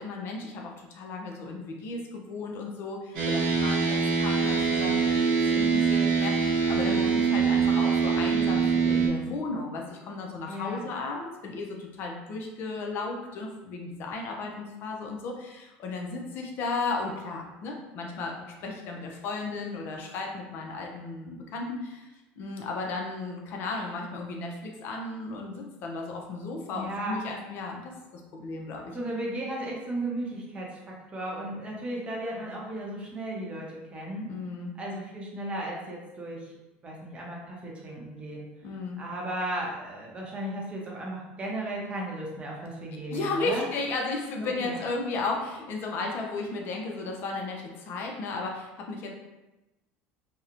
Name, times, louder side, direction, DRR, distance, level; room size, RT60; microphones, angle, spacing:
voice 1, 0.0-29.0 34.3-34.7 38.6-39.0 43.1-49.1, left 3 dB, 55° left, 1 dB, 0.4 m, -34 dB
sound 1, 3.1-9.1, right 5 dB, 85° right, 0.8 m, -24 dB
voice 2, 6.8-7.1 10.5-10.8 26.7-27.2 28.8-34.3 34.8-36.5 36.8-38.5 39.0-43.7 44.4-44.8, right 1 dB, 25° right, -2 dB, 0.6 m, -35 dB
2.8 x 2.0 x 2.4 m, 1.0 s
supercardioid pair, 120°, 5 cm